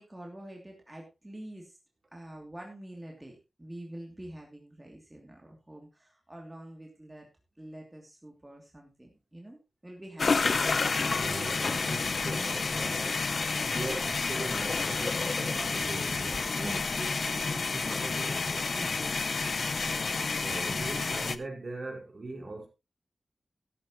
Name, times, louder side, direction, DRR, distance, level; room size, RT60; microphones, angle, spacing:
voice 1, 0.0-1.8 2.1-7.3 7.6-10.6 16.6-17.1 18.7-20.1 20.5-20.8, right 1 dB, 15° right, 2.9 m, -46 dB
sound 1, 10.2-21.4, left 4 dB, 60° left, 0.8 m, -30 dB
voice 2, 11.0-13.4 13.7-18.7 20.4-22.7, right 2 dB, 50° right, 4.9 m, -41 dB
13.0 x 12.5 x 3.1 m
wide cardioid pair, 120°, 0 cm